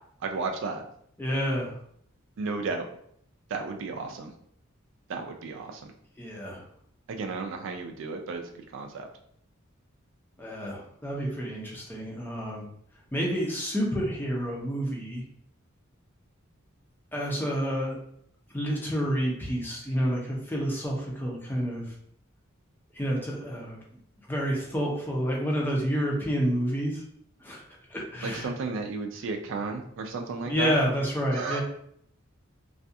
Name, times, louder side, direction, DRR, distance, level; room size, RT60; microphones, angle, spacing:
voice 1, 0.2-0.8 2.4-2.9 3.5-4.3 5.1-5.9 7.1-9.1 28.2-30.8 31.3-31.6, right 4 dB, 65° right, 4 dB, 0.3 m, -33 dB
voice 2, 1.2-1.7 6.2-6.6 10.4-12.7 13.1-15.2 17.1-18.0 18.5-21.8 23.0-23.8 24.3-27.0 27.4-27.6 27.9-28.5 30.5-31.6, equal, 10° left, -3 dB, 0.5 m, -29 dB
2.4 x 2.3 x 2.6 m, 0.67 s
head